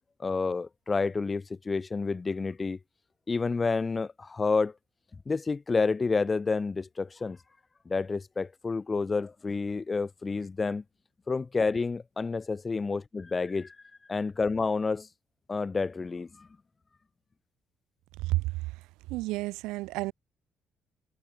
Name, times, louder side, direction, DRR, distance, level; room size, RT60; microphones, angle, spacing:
voice 1, 0.2-2.8 3.3-4.7 5.3-7.4 7.9-10.8 11.3-13.7 14.1-15.1 15.5-16.5, left 4 dB, 30° left, 1.0 m, -29 dB
voice 2, 19.1-20.1, right 20 dB, 85° right, 0.9 m, -30 dB
supercardioid pair, 70°, 0 cm